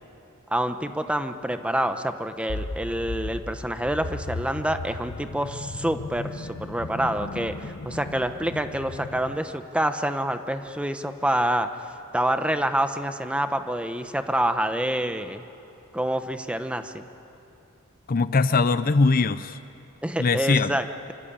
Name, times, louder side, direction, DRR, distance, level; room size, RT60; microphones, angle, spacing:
voice 1, 0.5-11.7 12.1-15.4 15.9-17.1 20.0-21.1, right 1 dB, 5° right, 8 dB, 1.0 m, -27 dB
sound 1, 2.5-9.4, left 2 dB, 80° left, 1.0 m, -36 dB
voice 2, 18.1-19.6 20.2-20.7, left 4 dB, 40° left, 13 dB, 0.6 m, -21 dB
25.5 x 25.0 x 8.8 m, 2.8 s
head